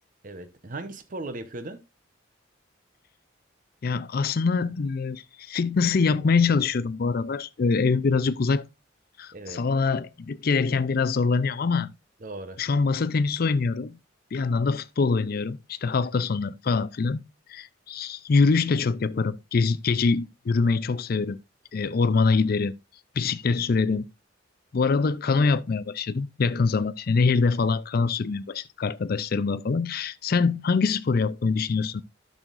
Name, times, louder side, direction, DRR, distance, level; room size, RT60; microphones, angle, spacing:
voice 1, 0.2-1.8 9.3-9.6 12.2-12.6 21.8-22.0, right 2 dB, 45° right, 0.8 m, -37 dB
voice 2, 3.8-8.6 9.2-11.9 12.6-14.0 14.3-17.2 17.5-21.4 21.7-22.7 23.2-24.0 24.7-32.0, left 4 dB, 50° left, 0.4 m, -24 dB
12.5 x 6.3 x 2.5 m
head